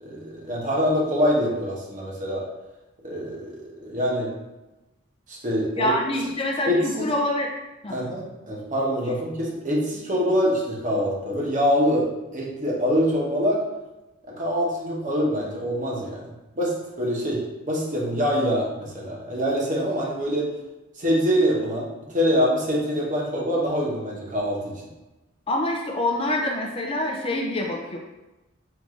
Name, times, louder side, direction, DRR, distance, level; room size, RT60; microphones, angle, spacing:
voice 1, 0.0-2.4 3.0-4.3 5.3-5.9 6.7-7.1 7.9-13.6 14.3-20.5 21.0-24.7, equal, 40° right, -3 dB, 1.0 m, -25 dB
voice 2, 5.8-7.5 7.8-8.0 25.5-28.0, left 1 dB, 25° left, 0 dB, 0.4 m, -26 dB
4.7 x 2.6 x 3.7 m, 1.0 s
head